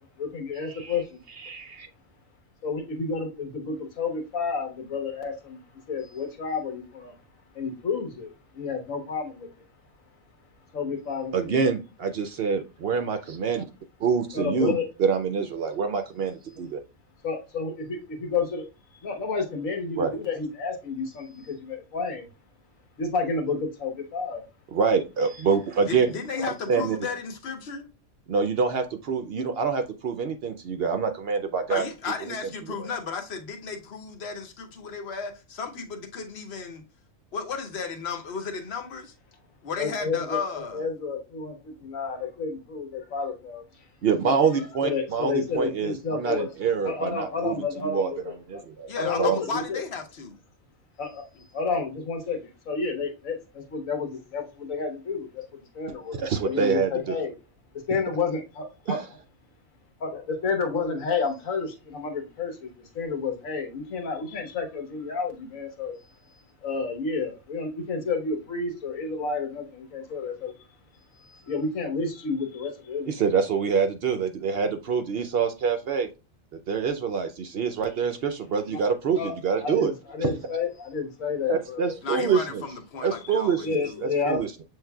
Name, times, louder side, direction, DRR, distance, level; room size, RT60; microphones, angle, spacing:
voice 1, 0.2-1.0 2.6-5.6 5.9-7.1 7.5-9.5 10.7-11.5 14.3-14.9 17.2-18.6 19.0-22.2 23.0-24.4 39.8-40.4 40.7-43.6 44.8-46.5 46.8-48.2 49.0-49.8 51.0-51.2 51.5-52.4 52.7-55.4 55.7-57.3 57.9-59.0 60.0-62.7 62.9-70.5 71.1-73.1 78.7-78.8 79.1-79.3 79.6-81.8 82.3-82.4 83.6-84.4, left 4 dB, 90° left, 1.5 m, -30 dB
voice 2, 1.4-1.9 11.3-13.7 14.0-16.8 20.0-20.1 24.7-26.1 26.7-27.0 28.3-31.8 32.3-32.4 44.0-48.9 49.2-49.4 56.1-57.2 58.9-59.0 73.1-76.1 76.7-79.9 80.2-80.3 81.5-82.7 83.0-84.5, right 6 dB, 60° right, 0.7 m, -26 dB
voice 3, 25.9-27.9 31.7-36.8 37.3-39.1 39.6-40.9 48.9-50.4 51.3-51.4 82.0-84.0, left 5 dB, 55° left, 1.0 m, -34 dB
7.3 x 3.2 x 2.2 m
omnidirectional pair, 1.4 m